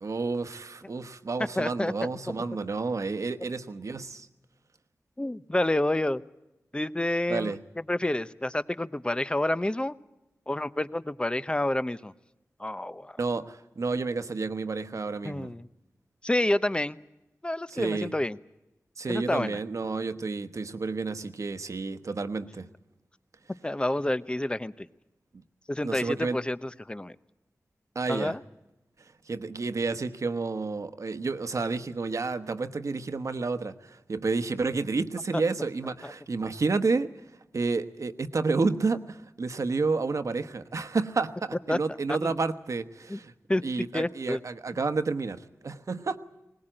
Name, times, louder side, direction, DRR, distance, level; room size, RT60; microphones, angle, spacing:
voice 1, 0.0-4.3 7.3-7.6 13.2-15.5 17.7-18.1 19.0-22.7 25.8-26.4 27.9-28.4 29.3-37.1 37.5-43.3 43.6-46.2, right 4 dB, 65° right, 10 dB, 1.2 m, -30 dB
voice 2, 1.6-1.9 5.2-6.2 6.7-7.5 7.9-10.0 10.5-12.1 12.6-13.2 15.2-15.7 16.2-17.0 17.4-18.4 19.1-19.6 23.6-24.9 25.7-27.2 28.1-28.4 36.0-36.1 41.7-41.8 42.2-42.3 43.1-43.2 43.5-43.6 43.9-44.4, left 1 dB, 15° left, 14 dB, 0.8 m, -28 dB
21.0 x 19.0 x 8.9 m, 0.93 s
wide cardioid pair, 75°, 6 cm